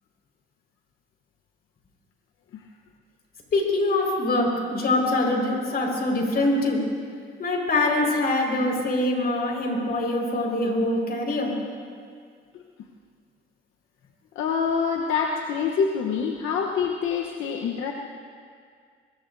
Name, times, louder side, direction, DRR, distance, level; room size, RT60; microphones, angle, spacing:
voice 1, 3.5-6.8 7.4-11.5, left 2 dB, 50° left, 0 dB, 4.9 m, -24 dB
voice 2, 14.3-17.9, left 6 dB, 85° left, 1 dB, 1.0 m, -26 dB
25.5 x 21.5 x 2.7 m, 2.1 s
cardioid pair, 90°, 20 cm